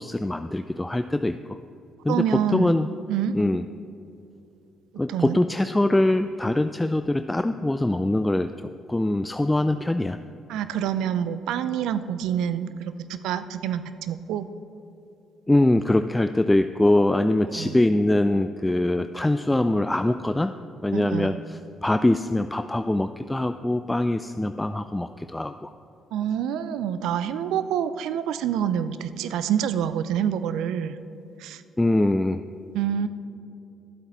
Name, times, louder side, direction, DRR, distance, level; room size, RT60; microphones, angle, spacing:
voice 1, 0.0-1.6 2.0-2.9 3.3-3.6 5.0-10.2 15.5-20.5 20.8-25.7 31.8-32.4, left 1 dB, 15° left, 9 dB, 0.3 m, -23 dB
voice 2, 2.1-2.8 3.1-3.4 5.1-5.4 10.5-14.5 17.5-17.8 20.9-21.4 26.1-31.0 31.4-31.6 32.7-33.1, right 9 dB, 75° right, 13 dB, 0.4 m, -27 dB
12.5 x 7.9 x 4.3 m, 2.7 s
supercardioid pair, 55°, 0 cm